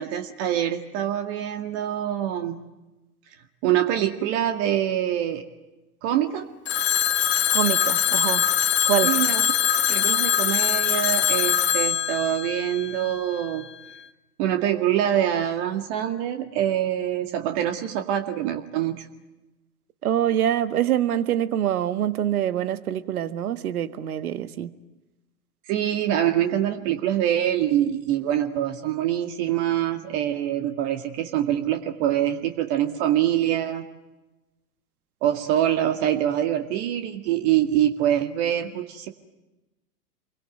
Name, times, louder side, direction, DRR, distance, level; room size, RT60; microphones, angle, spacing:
voice 1, 0.0-2.6 3.6-5.4 6.0-6.5 9.0-9.5 9.9-13.7 14.4-19.1 25.7-33.8 35.2-39.1, right 11 dB, 45° right, 2.1 m, -25 dB
Telephone, 6.7-13.5, left 9 dB, 25° left, 1.3 m, -23 dB
voice 2, 7.5-8.5 8.8-9.1 20.0-24.7, right 11 dB, 65° right, 1.7 m, -25 dB
28.0 x 23.0 x 9.2 m
figure-of-eight pair, 100°, 47 cm